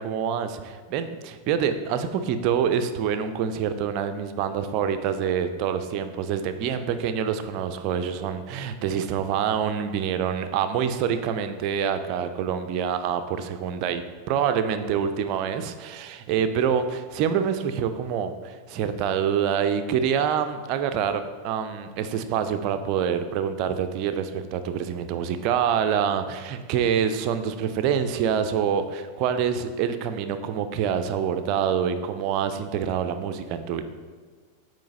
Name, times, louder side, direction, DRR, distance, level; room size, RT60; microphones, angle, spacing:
voice 1, 0.0-33.8, right 8 dB, 40° right, 9 dB, 0.5 m, -26 dB
8.6 x 3.1 x 5.2 m, 1.6 s
figure-of-eight pair, 90°, 0 cm